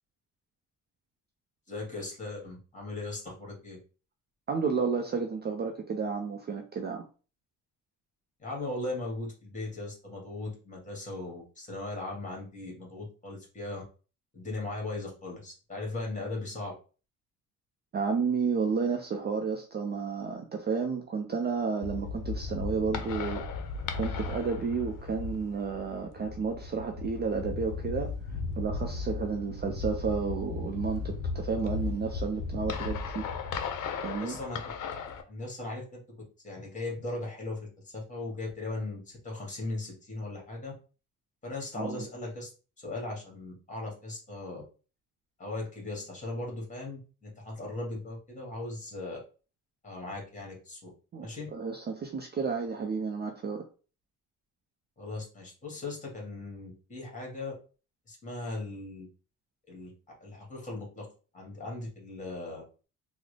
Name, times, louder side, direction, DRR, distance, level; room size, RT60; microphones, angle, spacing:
voice 1, 1.7-3.8 8.4-13.8 14.3-16.7 34.2-34.6 35.3-40.7 41.4-42.5 42.8-44.6 45.4-49.2 49.8-50.9 51.2-51.5 55.0-57.5 58.1-59.1 59.7-59.9 60.2-61.1 61.3-62.6, left 2 dB, 20° left, -1 dB, 1.6 m, -38 dB
voice 2, 4.5-7.1 17.9-23.4 24.0-33.3 34.0-34.4 41.8-42.1 51.1-53.7, right 5 dB, 30° right, 3 dB, 0.4 m, -32 dB
sound 1, 21.8-35.2, left 4 dB, 70° left, 0.6 m, -36 dB
3.6 x 2.1 x 3.2 m, 0.36 s
cardioid pair, 120°, 33 cm